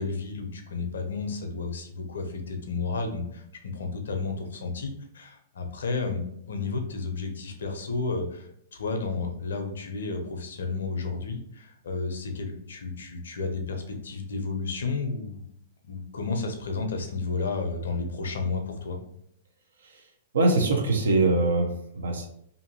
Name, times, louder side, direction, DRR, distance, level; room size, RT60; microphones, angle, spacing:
voice 1, 0.0-3.4 3.7-15.4 15.9-19.0, left 4 dB, 70° left, 4 dB, 0.5 m, -32 dB
voice 2, 20.3-22.3, right 2 dB, 75° right, 2 dB, 0.6 m, -23 dB
2.6 x 2.5 x 2.7 m, 0.71 s
figure-of-eight pair, 110°, 0 cm